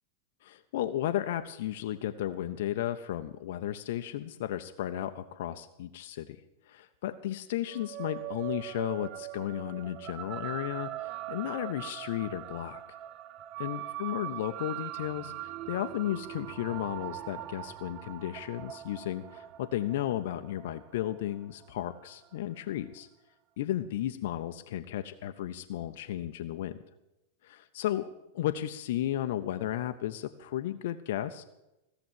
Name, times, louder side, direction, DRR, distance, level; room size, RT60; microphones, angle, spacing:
voice 1, 0.4-6.4 6.7-12.8 13.6-23.1 23.6-26.8 27.4-31.4, left 12 dB, 55° left, 8 dB, 0.7 m, -34 dB
sound 1, 7.7-22.4, right 15 dB, 35° right, 0.5 m, -41 dB
16.0 x 7.0 x 9.2 m, 0.92 s
figure-of-eight pair, 90°, 0 cm